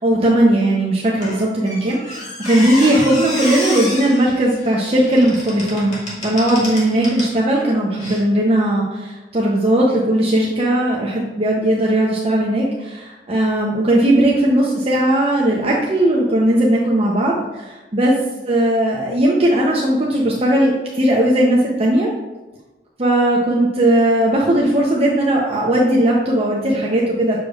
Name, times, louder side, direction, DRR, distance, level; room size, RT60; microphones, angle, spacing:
voice 1, 0.0-6.0 6.2-18.1 18.5-22.1 23.0-27.4, right 1 dB, 35° right, -3 dB, 0.7 m, -17 dB
Squeak, 1.2-7.4 8.0-8.2, left 1 dB, 40° left, 2.0 m, -29 dB
6.8 x 6.3 x 2.4 m, 1.1 s
head